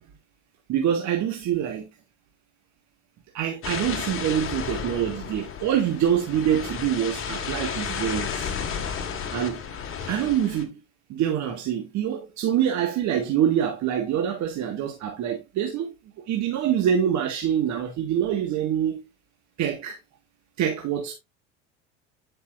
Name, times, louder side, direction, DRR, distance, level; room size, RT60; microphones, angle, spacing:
voice 1, 0.7-1.9 3.3-8.5 9.3-9.6 10.0-10.7 11.1-15.9 16.3-19.0 19.6-20.0 20.6-21.1, right 9 dB, 50° right, 1.7 m, -25 dB
sound 1, 3.6-10.6, left 7 dB, 35° left, 1.8 m, -32 dB
10.5 x 5.5 x 2.5 m
hypercardioid pair, 85°, 37 cm